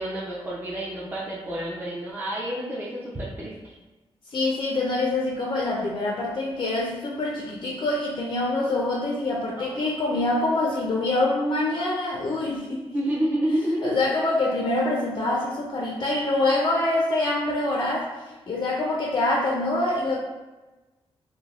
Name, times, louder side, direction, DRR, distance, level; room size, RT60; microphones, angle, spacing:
voice 1, 0.0-3.7 9.6-10.2 12.8-14.0, right 1 dB, 20° right, -6 dB, 0.5 m, -29 dB
voice 2, 4.3-12.9 13.8-18.1 18.5-20.2, left 2 dB, 45° left, -2 dB, 0.4 m, -25 dB
3.2 x 2.0 x 2.3 m, 1.2 s
cardioid pair, 85°, 11 cm